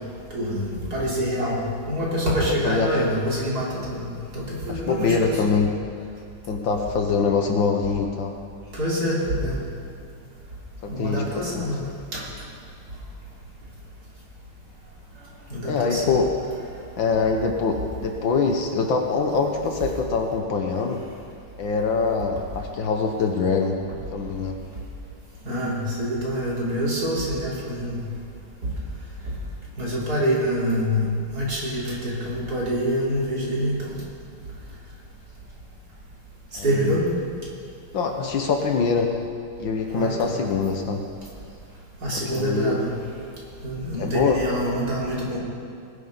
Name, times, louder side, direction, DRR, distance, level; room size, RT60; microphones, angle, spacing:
voice 1, 0.3-1.6 1.9-4.1 4.3-5.6 8.7-9.6 10.9-11.9 12.1-12.2 15.5-16.1 25.5-28.0 29.8-33.9 36.6-37.0 39.9-40.4 42.0-42.9 43.6-45.4, equal, 45° right, -6 dB, 3.5 m, -26 dB
voice 2, 2.5-3.0 4.7-5.7 6.5-8.3 10.8-11.2 11.5-11.7 15.6-16.3 17.0-21.0 21.6-23.8 24.1-24.6 36.5-36.9 37.9-39.1 39.6-41.0 42.1-42.8 44.0-44.4, left 5 dB, 65° left, 3 dB, 1.6 m, -24 dB
19.5 x 11.0 x 4.0 m, 2.4 s
omnidirectional pair, 2.4 m